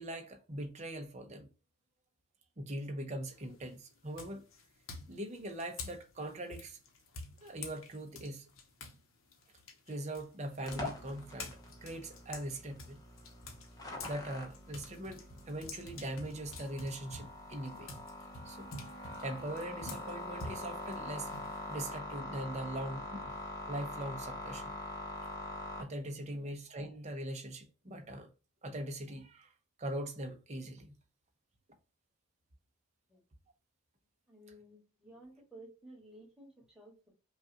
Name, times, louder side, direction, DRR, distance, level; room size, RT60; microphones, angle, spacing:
voice 1, 0.0-1.5 2.6-4.4 5.1-6.8 7.4-8.5 9.9-13.0 14.0-18.0 18.4-18.7 19.2-21.3 21.7-23.4 23.7-24.7 25.8-28.3 28.6-29.5 29.8-31.0, right 1 dB, 30° right, 0.7 m, -41 dB
sound 1, 3.2-3.6 4.1-9.0 9.3-14.2 14.5-21.9, left 3 dB, 70° left, 0.9 m, -48 dB
sound 2, 10.7-25.8, left 1 dB, 15° left, 0.8 m, -44 dB
voice 2, 34.3-37.1, right 1 dB, 5° right, 1.7 m, -55 dB
5.4 x 2.4 x 2.8 m
head